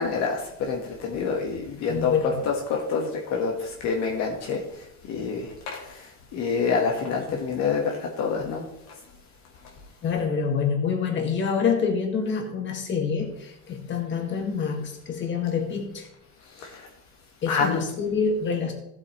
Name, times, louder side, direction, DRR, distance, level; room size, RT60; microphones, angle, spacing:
voice 1, 0.0-4.6 5.1-6.0 6.3-8.7 16.6-16.8 17.5-17.8, left 5 dB, 60° left, 1 dB, 1.5 m, -27 dB
voice 2, 1.9-2.3 10.0-16.1 17.4-18.7, left 6 dB, 40° left, 3 dB, 2.0 m, -26 dB
14.5 x 8.0 x 3.1 m, 0.79 s
cardioid pair, 135°, 30 cm